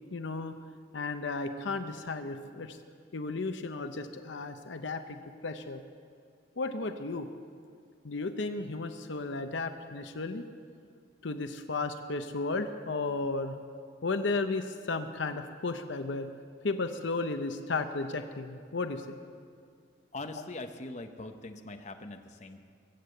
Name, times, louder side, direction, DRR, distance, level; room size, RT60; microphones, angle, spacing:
voice 1, 0.1-0.6 0.9-2.8 3.1-5.8 6.6-7.3 8.0-10.4 11.2-13.6 14.0-16.3 16.6-19.2, left 3 dB, 65° left, 8 dB, 0.7 m, -34 dB
voice 2, 20.1-22.6, left 2 dB, 35° left, 5 dB, 0.8 m, -42 dB
22.0 x 8.3 x 7.8 m, 2.2 s
head